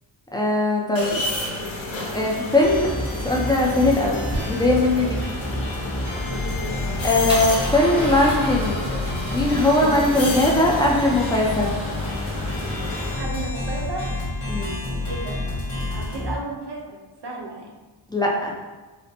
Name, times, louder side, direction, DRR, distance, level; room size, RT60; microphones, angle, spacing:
voice 1, 0.3-1.2 2.1-4.2 4.5-5.1 7.0-8.9 9.3-11.7 14.5-14.7 18.1-18.5, left 1 dB, 10° left, -2 dB, 0.5 m, -20 dB
sound 1, 1.0-13.1, left 2 dB, 75° left, 0.7 m, -32 dB
sound 2, 2.6-16.3, left 1 dB, 55° left, 1.1 m, -29 dB
Male speech man speaking / Car / Engine starting, 2.6-13.1, equal, 10° right, 0.8 m, -36 dB
voice 2, 6.3-7.0 9.8-9.9 13.2-14.0 15.1-15.4 15.9-17.0 17.2-17.7, right 2 dB, 60° right, -2 dB, 0.8 m, -34 dB
4.2 x 2.1 x 2.8 m, 1.2 s
wide cardioid pair, 85°, 47 cm